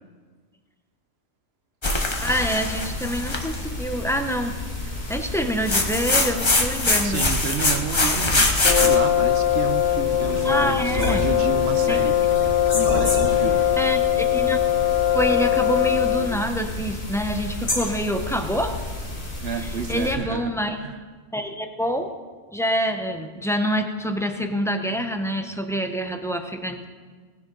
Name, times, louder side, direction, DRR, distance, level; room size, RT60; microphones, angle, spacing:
sound 1, 1.8-3.6 5.6-9.0, left 2 dB, 25° left, 1.1 m, -22 dB
sound 2, 2.1-20.1, left 2 dB, 55° left, 3.4 m, -31 dB
voice 1, 2.2-4.6 4.8-7.2 10.4-11.2 11.9-12.0 13.8-14.6 15.1-18.8 19.5-20.8 21.3-22.1 22.5-26.9, equal, 5° left, 5 dB, 0.7 m, -26 dB
voice 2, 7.0-12.2 12.7-13.7 19.4-20.9, right 6 dB, 55° right, 8 dB, 1.0 m, -31 dB
Brass instrument, 8.6-16.4, left 11 dB, 70° left, 0.9 m, -21 dB
19.0 x 10.5 x 3.9 m, 1.5 s
omnidirectional pair, 1.3 m